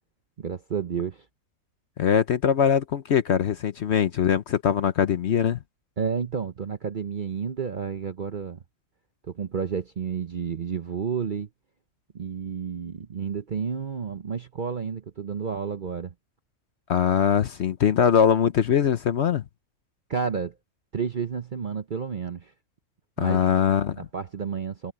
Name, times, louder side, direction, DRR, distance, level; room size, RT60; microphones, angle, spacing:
voice 1, 0.4-1.3 6.0-8.6 9.2-11.5 12.1-16.1 20.1-20.5 20.9-22.5 23.2-23.5 23.9-24.9, right 6 dB, 45° right, 0.7 m, -31 dB
voice 2, 2.0-5.6 16.9-19.4 23.2-24.0, left 8 dB, 55° left, 0.9 m, -22 dB
omnidirectional pair, 1.6 m